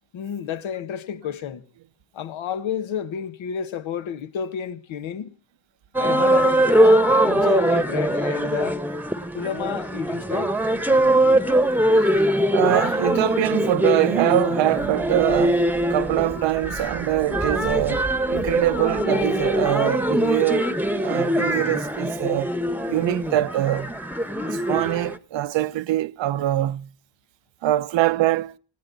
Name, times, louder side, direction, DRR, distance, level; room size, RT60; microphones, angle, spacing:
voice 1, 0.1-1.6 2.1-5.3 6.0-8.8 9.3-10.5 12.4-12.6, left 8 dB, 75° left, 1.6 m, -30 dB
sound 1, 5.9-25.2, right 1 dB, 5° right, 1.2 m, -22 dB
voice 2, 12.5-22.5 22.9-23.9 24.4-26.9 27.6-28.5, right 14 dB, 65° right, 0.8 m, -24 dB
18.5 x 18.5 x 4.0 m
cardioid pair, 80°, 48 cm